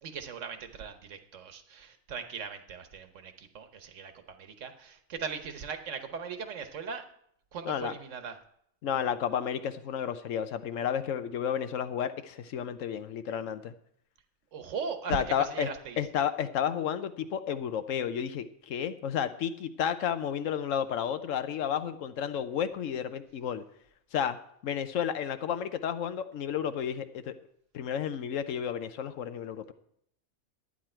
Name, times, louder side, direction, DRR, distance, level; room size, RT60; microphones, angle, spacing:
voice 1, 0.0-7.0 7.5-8.4 14.5-16.0, right 6 dB, 70° right, 8 dB, 1.3 m, -39 dB
voice 2, 8.8-13.7 15.1-15.7 16.0-23.6 24.1-24.4 24.6-27.3 27.7-29.7, left 8 dB, 75° left, 11 dB, 1.1 m, -32 dB
11.5 x 9.6 x 4.4 m, 0.69 s
omnidirectional pair, 1.4 m